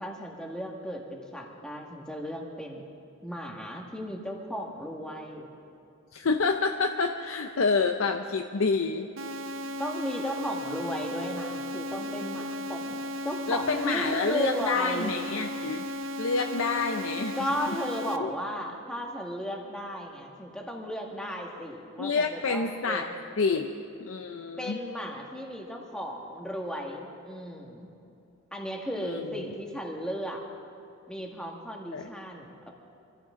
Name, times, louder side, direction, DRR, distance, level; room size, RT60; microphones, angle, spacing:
voice 1, 0.0-2.9 3.2-5.5 9.8-13.0 13.2-15.1 17.3-23.1 24.6-27.9 28.5-30.4 31.1-32.7, equal, 5° left, 0 dB, 1.7 m, -35 dB
voice 2, 6.1-9.1 13.5-15.8 16.2-17.4 18.2-18.3 22.0-23.1 23.4-23.7 24.0-24.8 29.0-29.3 31.9-32.1, left 4 dB, 65° left, 5 dB, 0.6 m, -28 dB
sound 1, 9.2-18.2, left 1 dB, 60° right, 0.8 m, -35 dB
24.5 x 15.0 x 3.8 m, 2.6 s
head